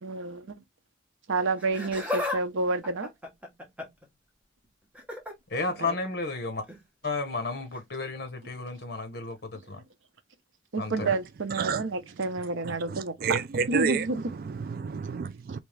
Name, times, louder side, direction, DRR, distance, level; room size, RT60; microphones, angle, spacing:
voice 1, 0.0-0.5 1.3-3.1 5.8-6.0 10.7-13.4 13.7-14.2, right 3 dB, 85° right, 0.7 m, -29 dB
Laughter, 1.6-2.4 2.7-4.1 4.9-5.3 6.6-6.8 7.7-7.8, left 2 dB, 5° right, 1.0 m, -34 dB
voice 2, 5.5-6.6 7.0-9.8 10.8-11.1, left 3 dB, 55° left, 0.9 m, -32 dB
voice 3, 11.5-11.8 12.6-15.6, right 5 dB, 50° right, 0.3 m, -31 dB
3.5 x 2.9 x 3.2 m
head